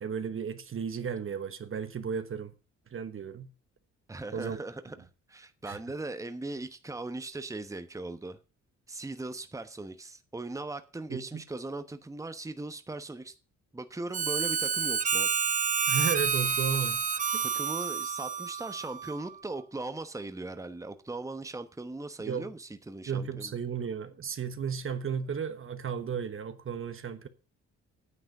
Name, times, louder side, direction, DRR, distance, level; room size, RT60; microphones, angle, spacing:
voice 1, 0.0-2.5 2.9-3.5 4.3-4.6 5.7-5.8 11.1-11.4 15.9-17.4 22.3-22.5 23.1-27.3, right 6 dB, 45° right, 1.2 m, -34 dB
voice 2, 4.1-8.4 8.9-13.3 13.7-15.3 17.4-23.6, right 2 dB, 10° right, 1.1 m, -39 dB
Harmonica, 14.1-19.3, right 6 dB, 25° right, 0.5 m, -29 dB
9.8 x 7.9 x 6.6 m
cardioid pair, 90°, 30 cm